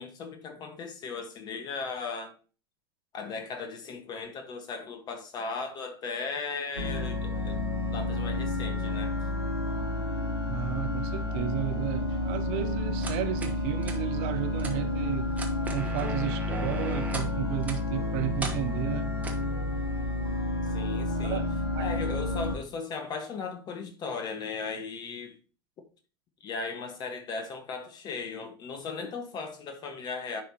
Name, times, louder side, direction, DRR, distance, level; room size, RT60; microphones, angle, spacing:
voice 1, 0.0-2.3 3.1-7.6 7.9-9.1 20.7-21.4 21.8-25.4 26.4-30.4, left 4 dB, 35° left, 1.4 m, -37 dB
sound 1, 6.8-22.6, left 2 dB, 85° left, 1.3 m, -30 dB
voice 2, 10.5-15.3 15.7-19.1 21.2-21.4 21.7-21.9, right 13 dB, 50° right, 0.7 m, -33 dB
sound 2, 13.0-13.6 13.8-14.0 14.6-14.7 15.3-17.3 17.6-17.8 18.4-18.6 19.2-19.4, right 3 dB, 10° right, 1.2 m, -37 dB
9.9 x 3.7 x 2.9 m
figure-of-eight pair, 85°, 13 cm